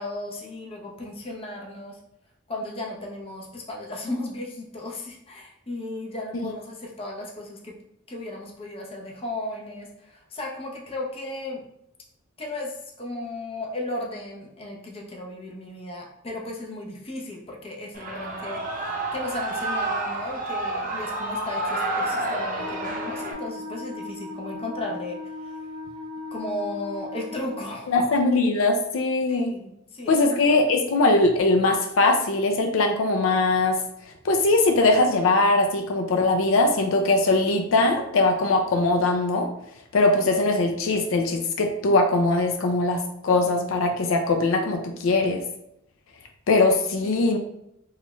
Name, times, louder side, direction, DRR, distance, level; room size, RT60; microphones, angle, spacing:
voice 1, 0.0-2.0 2.5-7.8 8.1-11.6 12.4-25.6 26.3-28.0 29.3-30.4 47.0-47.4, left 2 dB, 30° left, -1 dB, 0.6 m, -35 dB
Shout / Cheering, 17.9-23.3, right 2 dB, 40° right, 0.6 m, -29 dB
Wind instrument woodwind instrument, 22.5-27.7, left 3 dB, 45° left, 1.3 m, -37 dB
voice 2, 27.9-29.5 30.1-33.8 34.2-39.5 39.9-45.4 46.5-47.4, left 2 dB, 80° left, 4 dB, 0.4 m, -21 dB
3.1 x 2.3 x 3.0 m, 0.78 s
head